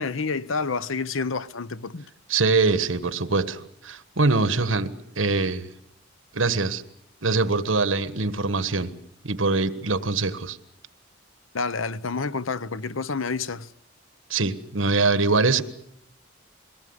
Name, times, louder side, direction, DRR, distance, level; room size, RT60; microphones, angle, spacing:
voice 1, 0.0-2.0 11.5-13.7, left 4 dB, 90° left, 0.9 m, -29 dB
voice 2, 2.3-5.7 6.3-6.8 7.2-8.9 9.2-10.6 14.3-15.6, right 3 dB, 75° right, 1.5 m, -23 dB
23.0 x 19.0 x 9.7 m
head